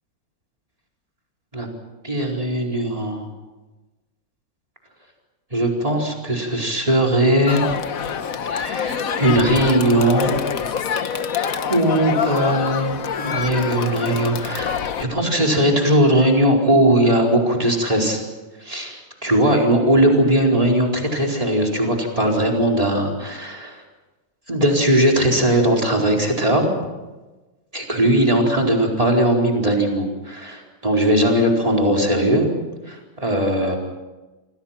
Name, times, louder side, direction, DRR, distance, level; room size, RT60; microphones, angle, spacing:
voice 1, 2.0-3.3 5.5-7.6 8.5-10.4 11.7-18.2 18.6-23.8 24.5-26.6 27.7-32.5 32.8-33.8, right 1 dB, 15° right, 0 dB, 4.6 m, -19 dB
Crowd, 7.5-15.0, left 7 dB, 50° left, 1.2 m, -26 dB
29.0 x 24.5 x 5.9 m, 1.2 s
omnidirectional pair, 2.3 m